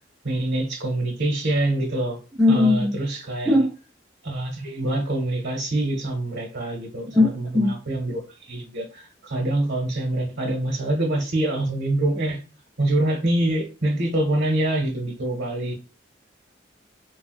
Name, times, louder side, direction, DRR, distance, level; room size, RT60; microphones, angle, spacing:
voice 1, 0.2-2.2 2.5-3.6 4.2-8.2 8.5-12.4 12.8-15.7, right 1 dB, 85° right, 1.0 m, -25 dB
voice 2, 2.4-2.9 3.4-3.7 7.1-7.3 7.5-7.7, left 2 dB, ahead, 0.9 m, -17 dB
3.5 x 2.3 x 2.4 m
head